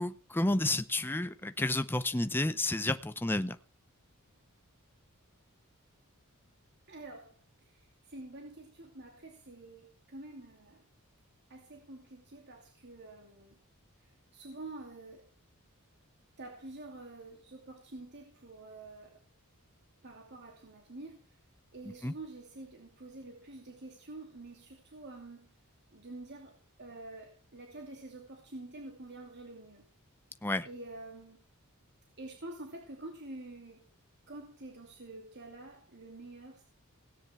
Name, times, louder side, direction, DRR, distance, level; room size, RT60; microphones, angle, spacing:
voice 1, 0.0-3.6 22.0-22.1 30.4-30.7, left 2 dB, 10° left, 11 dB, 0.6 m, -31 dB
voice 2, 6.9-10.8 11.5-13.6 14.0-15.3 16.4-19.2 20.0-21.4 21.7-25.5 25.9-26.5 26.8-29.9 30.6-31.4 32.2-33.8 34.3-36.6, right 2 dB, 50° right, 2 dB, 2.7 m, -48 dB
17.5 x 9.8 x 4.4 m, 0.42 s
head